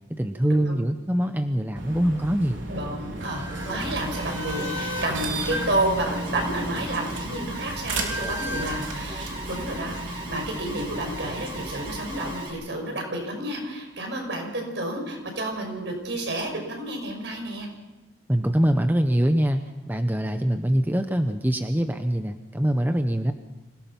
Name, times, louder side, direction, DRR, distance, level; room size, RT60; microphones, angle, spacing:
voice 1, 0.1-2.7 18.3-23.3, equal, 10° right, 7 dB, 0.8 m, -24 dB
sound 1, 1.8-12.4, right 1 dB, 85° right, 4.0 m, -33 dB
voice 2, 2.7-17.7, right 1 dB, 70° right, 2 dB, 5.9 m, -30 dB
Alarm, 3.6-12.5, right 1 dB, 25° right, 4.4 m, -38 dB
26.5 x 18.0 x 5.9 m, 1.1 s
head